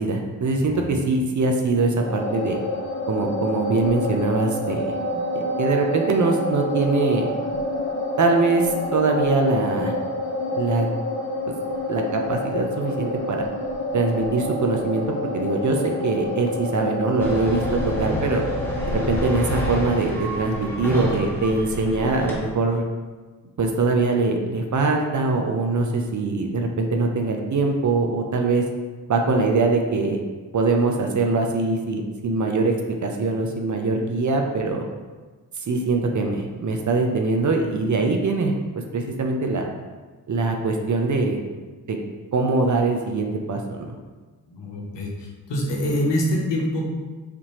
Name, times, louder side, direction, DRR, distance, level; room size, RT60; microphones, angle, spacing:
voice 1, 0.0-2.6 3.1-5.0 5.3-7.3 8.2-9.9 10.6-10.9 11.9-13.5 13.9-15.1 15.3-18.4 18.9-22.8 23.6-28.6 29.1-30.2 30.5-32.7 33.0-34.8 35.6-38.5 38.9-39.7 40.3-41.4 41.9-42.0 42.3-44.0, right 3 dB, 40° right, 3 dB, 0.7 m, -22 dB
sound 1, 2.0-20.0, left 1 dB, 30° left, 0.8 m, -28 dB
sound 2, 17.2-22.4, equal, 5° left, 1.3 m, -29 dB
voice 2, 44.5-45.1 45.5-46.9, equal, 70° left, -1 dB, 1.0 m, -24 dB
4.2 x 2.7 x 3.1 m, 1.3 s
supercardioid pair, 40°, 44 cm